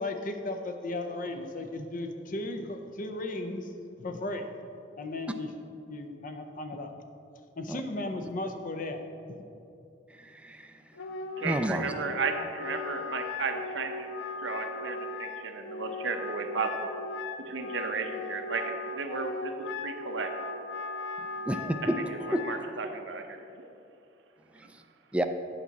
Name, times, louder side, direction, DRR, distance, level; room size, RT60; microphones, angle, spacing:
voice 1, 0.0-3.7 4.0-4.5 5.0-5.5 5.9-6.9 7.6-9.0, left 2 dB, 45° left, 6 dB, 0.6 m, -35 dB
voice 2, 10.1-10.7 11.4-11.9 21.5-21.9 22.3-22.4 24.5-24.7 25.1-25.2, equal, 5° right, 6 dB, 0.3 m, -30 dB
Wind instrument woodwind instrument, 10.9-22.6, left 3 dB, 90° left, 0.4 m, -38 dB
voice 3, 11.4-14.1 14.4-16.9 17.5-19.5 19.8-20.3 22.3-23.7, right 4 dB, 90° right, 5 dB, 0.7 m, -34 dB
8.6 x 5.7 x 4.1 m, 2.6 s
head